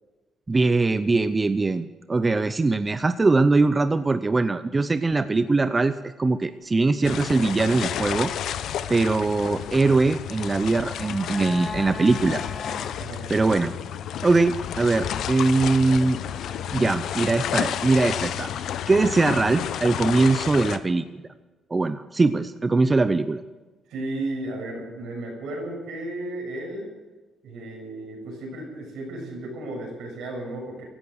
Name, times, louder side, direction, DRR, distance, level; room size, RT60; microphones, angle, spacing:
voice 1, 0.5-8.3 8.9-12.4 13.3-13.7 14.2-16.2 16.7-21.0 21.7-23.4, right 3 dB, 25° right, 11 dB, 0.6 m, -21 dB
sound 1, 7.0-20.8, left 10 dB, 75° left, 0.8 m, -31 dB
sound 2, 10.4-13.0 13.3-13.4, left 4 dB, 40° left, 1.3 m, -37 dB
voice 2, 23.9-26.9 27.4-30.8, right 1 dB, 85° right, 0 dB, 6.7 m, -34 dB
16.0 x 12.5 x 6.6 m, 1.2 s
cardioid pair, 90°, 0 cm